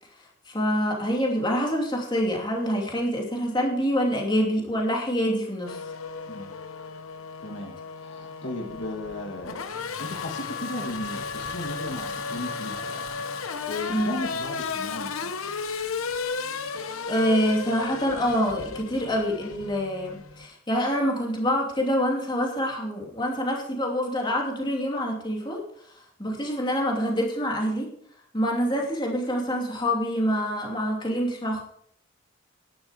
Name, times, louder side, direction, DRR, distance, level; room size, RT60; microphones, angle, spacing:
voice 1, 0.5-5.8 13.9-14.2 17.1-25.6 26.2-27.9 28.3-31.6, equal, 20° left, -1 dB, 2.8 m, -26 dB
Race car auto racing / Accelerating revving vroom, 5.7-20.5, left 5 dB, 85° left, 0.9 m, -34 dB
voice 2, 7.4-9.6 10.0-13.1 13.3-15.3, left 2 dB, 55° left, 1 dB, 2.0 m, -36 dB
11.5 x 11.0 x 5.0 m, 0.65 s
head